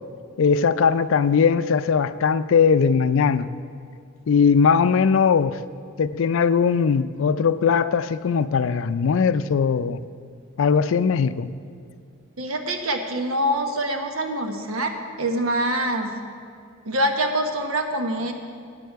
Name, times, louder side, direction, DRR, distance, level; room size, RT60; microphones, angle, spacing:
voice 1, 0.4-3.5 4.3-5.6 6.0-10.0 10.6-11.5, left 6 dB, 65° left, 14 dB, 0.4 m, -19 dB
voice 2, 12.4-16.3 16.8-18.3, right 1 dB, 85° right, 5 dB, 1.1 m, -25 dB
13.0 x 9.2 x 4.6 m, 2.3 s
head